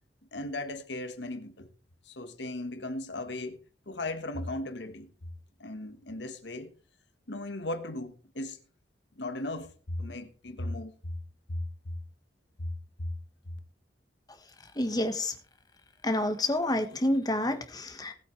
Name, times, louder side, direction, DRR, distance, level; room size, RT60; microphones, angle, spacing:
voice 1, 0.3-1.7 2.0-3.6 3.9-5.1 5.6-6.7 7.3-8.6 9.2-11.1 11.5-11.9 12.6-12.7 13.0-13.1, left 1 dB, 85° left, 1.4 m, -37 dB
voice 2, 14.7-15.3 16.0-18.1, left 1 dB, 20° left, 1.4 m, -28 dB
18.5 x 8.4 x 3.3 m
head